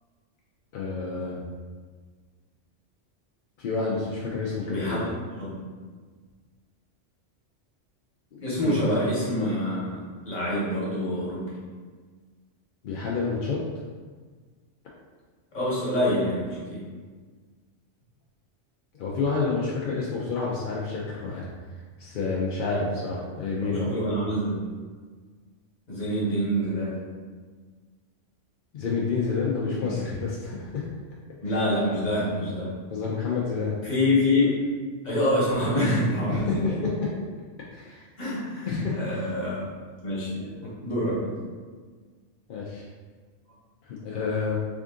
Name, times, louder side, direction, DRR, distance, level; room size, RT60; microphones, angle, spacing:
voice 1, 0.7-1.4 3.6-5.1 8.3-8.8 12.8-13.6 18.9-21.5 22.0-23.9 28.7-30.8 31.5-31.6 32.9-33.7 36.3-36.6 36.8-36.9 37.7-38.1 38.6-39.3 42.5-42.9 43.8-44.6, left 4 dB, 60° left, -4 dB, 0.5 m, -29 dB
voice 2, 4.6-5.0 5.4-5.7 8.4-11.5 15.5-16.8 23.6-24.6 25.9-26.9 31.4-32.7 33.8-34.6 35.0-36.8 38.2-39.6 40.0-41.4, left 1 dB, 35° left, -7 dB, 1.2 m, -26 dB
3.5 x 2.5 x 3.6 m, 1.5 s
omnidirectional pair, 1.3 m